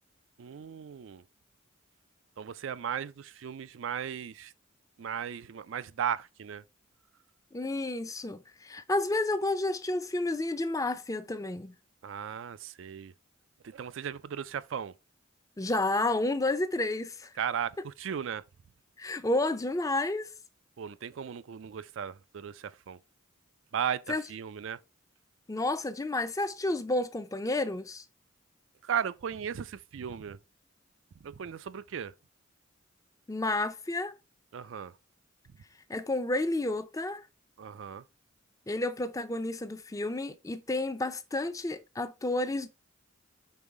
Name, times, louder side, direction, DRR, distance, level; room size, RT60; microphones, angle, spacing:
voice 1, 0.4-1.2 2.4-4.5 5.0-6.6 12.0-13.1 13.6-14.9 17.4-18.4 20.8-23.0 23.7-24.8 28.8-30.4 31.2-32.1 34.5-34.9 37.6-38.0, right 8 dB, 65° right, 0.4 m, -36 dB
voice 2, 7.5-11.7 15.6-17.3 19.0-20.3 24.1-24.2 25.5-28.0 33.3-34.2 35.9-37.3 38.7-42.7, left 2 dB, 15° left, 0.5 m, -31 dB
5.5 x 3.9 x 4.7 m
head